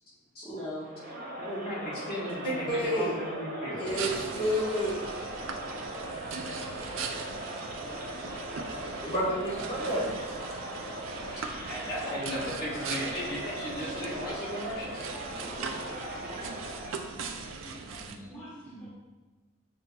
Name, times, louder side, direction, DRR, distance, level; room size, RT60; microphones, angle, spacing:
voice 1, 0.4-0.9 2.7-2.9 3.4-3.6 5.6-6.7 8.0-8.2 8.5-8.7 9.5-9.9 11.3-11.7 13.9-14.4 15.4-18.9, equal, 5° left, -10 dB, 0.6 m, -47 dB
Crowd, 0.8-17.1, right 1 dB, 50° right, 0.8 m, -39 dB
voice 2, 1.4-4.2 11.7-15.1 18.0-18.9, equal, 50° left, -7 dB, 1.3 m, -36 dB
voice 3, 2.7-3.1 3.8-5.0 9.0-10.1, equal, 25° left, -8 dB, 1.1 m, -29 dB
sound 1, 3.9-18.2, right 5 dB, 75° right, 0.4 m, -40 dB
6.4 x 2.7 x 2.3 m, 1.2 s
head